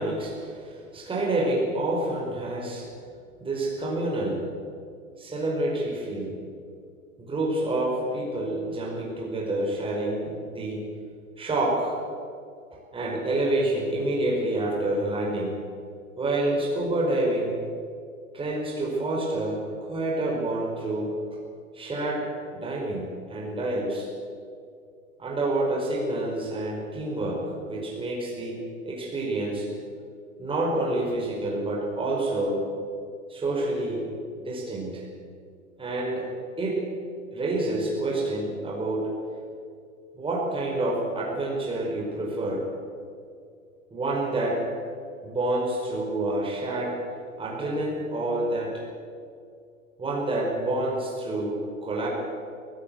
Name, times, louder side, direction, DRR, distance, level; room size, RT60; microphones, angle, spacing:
voice 1, 0.0-2.9 3.4-4.5 5.2-6.3 7.2-10.9 11.4-12.0 12.9-15.6 16.2-17.6 18.3-21.2 21.7-24.1 25.2-28.6 28.9-29.7 30.4-32.6 33.3-34.1 34.4-35.0 35.8-36.3 36.6-36.9 37.3-39.1 40.2-42.6 43.9-44.7 45.2-47.0 47.4-48.8 50.0-52.1, right 2 dB, 10° right, -2 dB, 5.1 m, -28 dB
23.0 x 16.5 x 7.9 m, 2.3 s
hypercardioid pair, 110°, 42 cm